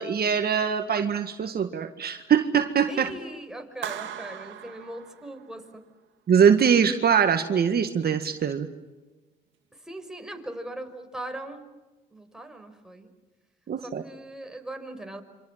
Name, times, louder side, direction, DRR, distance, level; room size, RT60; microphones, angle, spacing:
voice 1, 0.0-3.1 6.3-8.7 13.7-14.0, right 7 dB, 50° right, 7 dB, 1.8 m, -22 dB
voice 2, 2.9-5.8 9.8-11.6 12.1-13.1 13.8-15.2, right 1 dB, 5° right, 4 dB, 5.3 m, -39 dB
Clapping, 3.8-5.7, right 10 dB, 75° right, 2.6 m, -39 dB
27.5 x 26.5 x 7.4 m, 1.2 s
cardioid pair, 90°, 20 cm